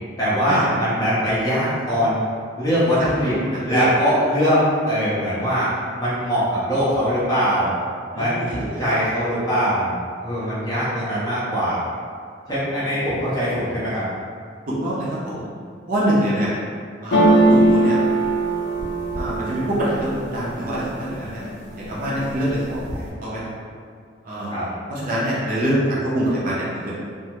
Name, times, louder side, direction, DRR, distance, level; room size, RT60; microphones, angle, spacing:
voice 1, 0.2-2.2 2.6-3.3 3.6-5.7 6.0-7.7 8.1-9.9 10.2-11.8 12.5-14.1 24.5-24.7, equal, 20° left, -11 dB, 0.7 m, -21 dB
voice 2, 3.0-3.9 8.1-8.8 10.4-10.8 14.7-15.4 15.9-16.5 17.0-18.0 19.1-21.4 21.8-23.5 24.2-27.1, right 1 dB, 45° right, -8 dB, 0.5 m, -25 dB
sound 1, 17.1-21.0 21.4-22.0 22.3-23.1, right 1 dB, 60° left, 0.4 m, -20 dB
2.2 x 2.0 x 2.8 m, 2.1 s
head